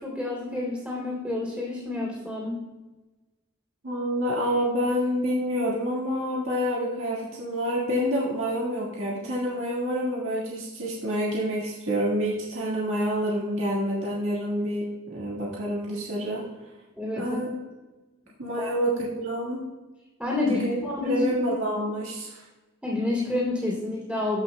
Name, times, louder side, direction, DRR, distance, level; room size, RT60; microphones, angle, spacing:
voice 1, 0.0-2.6 17.0-17.4 18.6-18.7 20.2-21.3 22.8-24.4, left 2 dB, 5° right, -6 dB, 2.6 m, -29 dB
voice 2, 3.8-16.4 17.1-17.5 18.4-19.6 20.4-20.7 21.0-22.4, equal, 70° right, -6 dB, 1.8 m, -28 dB
14.5 x 5.8 x 2.2 m, 1.2 s
head